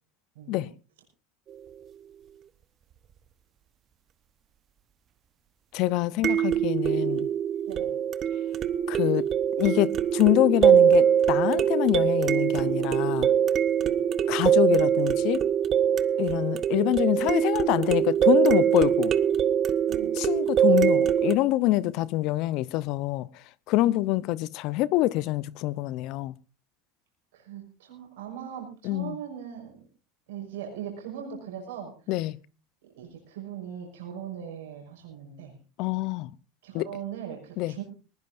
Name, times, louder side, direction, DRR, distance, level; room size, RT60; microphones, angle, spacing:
sound 1, 1.5-1.6 6.2-21.4, right 9 dB, 40° right, 1.0 m, -23 dB
voice 1, 5.7-7.3 8.9-9.3 9.6-13.3 14.3-15.4 16.2-19.1 20.2-23.3 23.7-26.3 28.8-29.2 32.1-32.4 35.8-36.3 36.7-36.9 37.6-37.7, left 16 dB, 60° left, 0.7 m, -25 dB
voice 2, 27.3-29.8 30.3-31.9 33.0-35.6 36.6-37.8, right 9 dB, 80° right, 6.2 m, -39 dB
20.0 x 19.5 x 2.6 m
hypercardioid pair, 85°, 0 cm